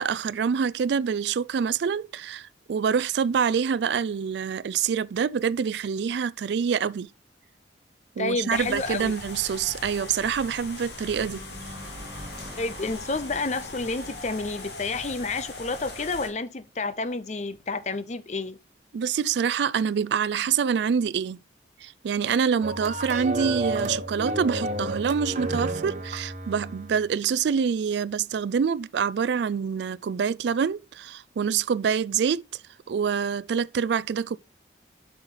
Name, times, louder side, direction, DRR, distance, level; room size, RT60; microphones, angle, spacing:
voice 1, 0.0-7.1 8.2-11.4 18.9-21.4 21.8-32.5 32.9-34.4, right 7 dB, 75° right, 0.3 m, -26 dB
voice 2, 8.2-9.1 12.6-18.6, left 3 dB, 40° left, 0.6 m, -30 dB
sound 1, 8.5-16.3, left 2 dB, 65° left, 2.3 m, -40 dB
sound 2, 11.3-15.9, equal, 20° right, 2.2 m, -46 dB
sound 3, 22.6-27.0, right 1 dB, 40° right, 1.2 m, -31 dB
7.9 x 5.8 x 3.8 m
head